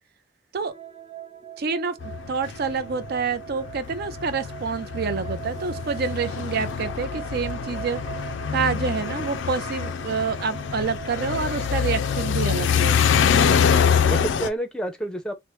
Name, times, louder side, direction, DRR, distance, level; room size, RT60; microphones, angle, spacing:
sound 1, 0.7-14.6, right 11 dB, 35° right, 1.0 m, -41 dB
voice 1, 1.6-2.0 2.3-8.0 8.5-13.1, right 5 dB, 55° right, 0.5 m, -27 dB
sound 2, 2.0-14.5, left 7 dB, 70° left, 0.3 m, -25 dB
voice 2, 13.6-15.3, right 1 dB, 5° left, 0.6 m, -30 dB
2.9 x 2.1 x 3.0 m
head